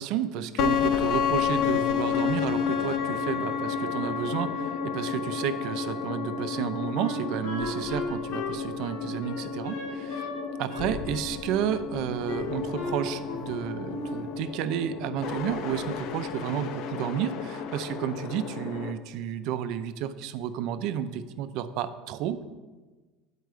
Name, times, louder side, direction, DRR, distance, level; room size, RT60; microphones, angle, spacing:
voice 1, 0.0-10.3 10.6-22.4, right 10 dB, 60° right, 11 dB, 0.4 m, -31 dB
sound 1, 0.6-18.9, left 7 dB, 50° left, 0.5 m, -31 dB
Wind instrument woodwind instrument, 7.0-10.4 10.7-11.8 12.3-13.6 13.9-14.3, left 2 dB, 85° left, 1.7 m, -37 dB
7.9 x 4.6 x 4.8 m, 1.3 s
cardioid pair, 155°, 0 cm